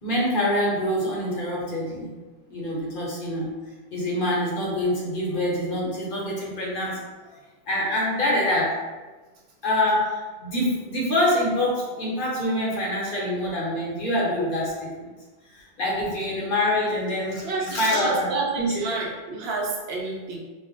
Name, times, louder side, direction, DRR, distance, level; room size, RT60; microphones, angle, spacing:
voice 1, 0.0-2.1 2.5-3.5 3.9-7.0 7.7-8.7 9.6-15.1 15.5-18.8, left 1 dB, 55° left, -4 dB, 0.8 m, -25 dB
voice 2, 17.4-20.4, right 3 dB, 75° right, -2 dB, 0.9 m, -29 dB
2.3 x 2.1 x 3.7 m, 1.3 s
omnidirectional pair, 1.1 m